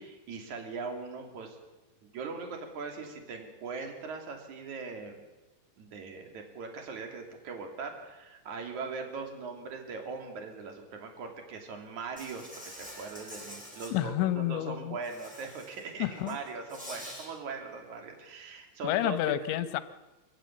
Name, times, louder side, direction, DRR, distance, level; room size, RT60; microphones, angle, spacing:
voice 1, 0.0-1.6 2.0-5.2 5.8-19.3, right 4 dB, 45° right, 4 dB, 3.7 m, -40 dB
Insect, 12.2-13.9 15.0-15.8 16.2-17.3, equal, ahead, 6.4 m, -46 dB
voice 2, 13.9-15.0 16.0-16.4 18.8-19.8, left 13 dB, 80° left, 13 dB, 3.1 m, -29 dB
25.0 x 15.0 x 8.4 m, 1.1 s
omnidirectional pair, 5.4 m